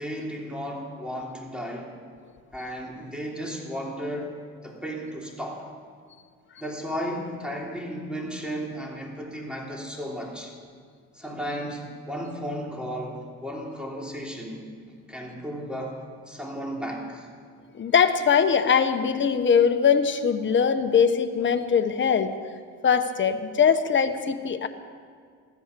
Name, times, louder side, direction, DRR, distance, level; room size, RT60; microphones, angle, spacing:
voice 1, 0.0-1.9 2.5-4.4 4.6-5.7 6.6-10.5 11.1-14.7 15.1-16.0 16.3-17.3, equal, 5° right, -2 dB, 3.4 m, -34 dB
voice 2, 17.7-22.3 22.8-24.7, left 7 dB, 40° left, 8 dB, 1.1 m, -21 dB
15.0 x 13.5 x 6.8 m, 2.1 s
cardioid pair, 90°, 30 cm